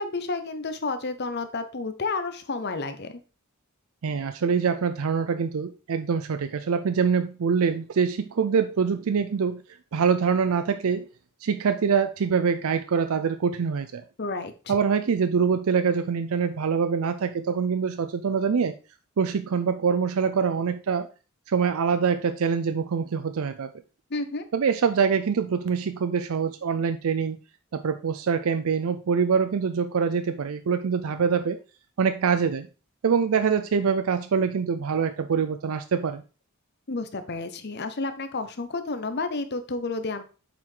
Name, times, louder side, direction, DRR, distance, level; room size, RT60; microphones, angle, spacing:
voice 1, 0.0-3.2 14.2-14.7 24.1-24.4 36.9-40.2, left 3 dB, 50° left, 10 dB, 0.8 m, -31 dB
voice 2, 4.0-9.6 9.9-11.1 11.4-14.0 14.7-18.7 19.2-21.1 21.5-23.7 24.5-27.4 27.7-31.6 32.0-32.7 33.0-36.2, right 6 dB, 70° right, 9 dB, 0.4 m, -24 dB
7.5 x 4.7 x 3.8 m, 0.34 s
head